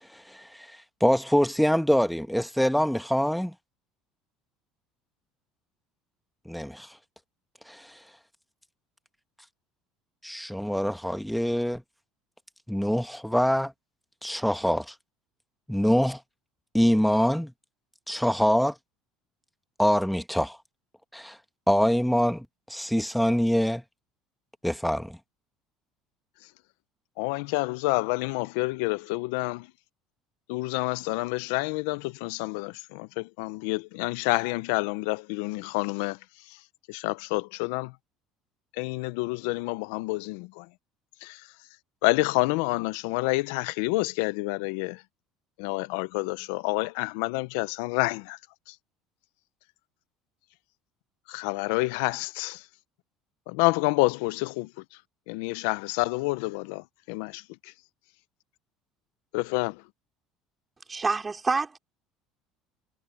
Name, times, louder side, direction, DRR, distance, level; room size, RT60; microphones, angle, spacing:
voice 1, 0.0-3.5 6.4-7.0 7.7-8.0 10.2-11.8 12.7-13.7 14.2-14.9 15.7-16.2 16.7-17.5 18.1-18.7 19.8-20.6 21.1-21.4 21.7-23.8 24.6-25.2, equal, ahead, 1.5 m, -25 dB
voice 2, 27.2-29.7 30.5-36.2 36.9-37.9 38.8-40.7 41.2-41.4 42.0-45.0 45.6-48.4 51.3-52.6 53.5-54.7 55.3-57.4 59.3-59.8, left 23 dB, 85° left, 0.7 m, -28 dB
voice 3, 60.9-61.8, right 4 dB, 20° right, 3.7 m, -27 dB
supercardioid pair, 100°, 0 cm